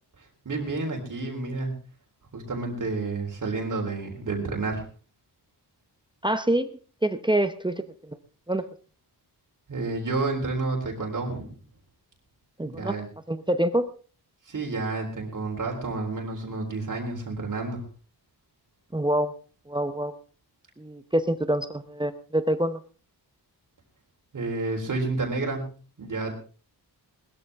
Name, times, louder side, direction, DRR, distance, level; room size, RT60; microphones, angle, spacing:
voice 1, 0.2-1.8 2.3-4.9 9.7-11.5 12.6-13.1 14.4-17.8 24.3-26.4, right 3 dB, 50° right, 0 dB, 3.8 m, -30 dB
voice 2, 6.2-6.7 7.0-8.2 8.5-8.6 12.6-12.9 13.3-13.9 18.9-19.3 19.7-20.1 20.8-22.8, right 1 dB, 10° right, 9 dB, 0.8 m, -26 dB
20.5 x 13.5 x 3.6 m, 0.38 s
wide cardioid pair, 160°, 40 cm